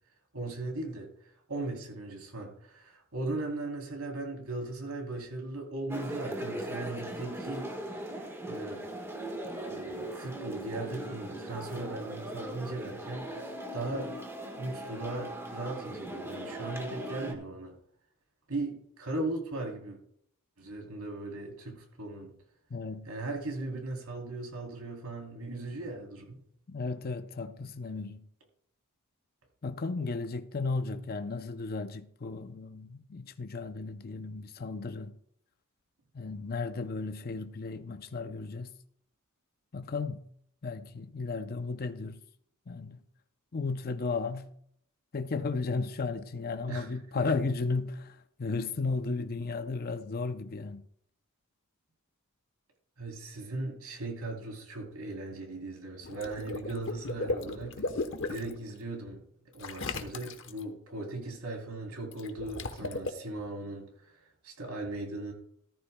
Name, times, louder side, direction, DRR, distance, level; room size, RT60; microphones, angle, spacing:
voice 1, 0.3-8.0 8.5-8.8 9.6-13.3 13.7-14.1 14.6-17.7 18.5-20.0 20.6-22.3 23.0-26.4 46.7-47.3 53.0-57.8 58.2-59.2 59.5-65.3, right 2 dB, 85° right, 3.2 m, -38 dB
sound 1, 5.9-17.3, right 1 dB, 10° right, 1.4 m, -39 dB
voice 2, 22.7-23.1 26.7-28.3 29.6-35.1 36.1-38.7 39.7-40.2 40.6-42.2 42.7-43.0 43.5-44.5 45.1-50.9, left 4 dB, 45° left, 0.5 m, -34 dB
Water / Liquid, 56.0-58.5 59.6-60.6 62.1-63.1, left 2 dB, 60° left, 1.0 m, -35 dB
14.0 x 14.0 x 2.2 m
head